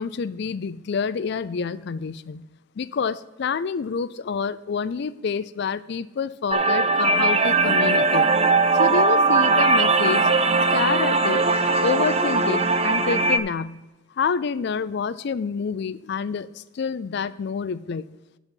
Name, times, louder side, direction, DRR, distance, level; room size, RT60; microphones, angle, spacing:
voice 1, 0.0-2.4 2.8-8.3 8.7-10.3 10.7-11.5 11.8-13.8 14.2-18.1, left 6 dB, 50° left, 16 dB, 0.3 m, -28 dB
sound 1, 6.5-13.4, right 3 dB, 30° right, 0.5 m, -19 dB
11.5 x 4.0 x 7.1 m, 1.1 s
head